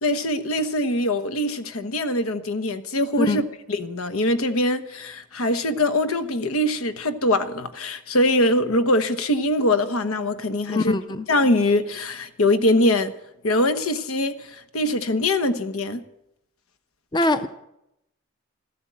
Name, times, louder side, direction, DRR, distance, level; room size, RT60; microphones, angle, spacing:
voice 1, 0.0-3.4 3.7-11.0 11.3-13.1 13.4-16.0, left 1 dB, 90° left, 1.2 m, -23 dB
voice 2, 10.7-11.3 17.1-17.5, left 2 dB, 20° left, 0.5 m, -22 dB
14.0 x 12.5 x 7.5 m
head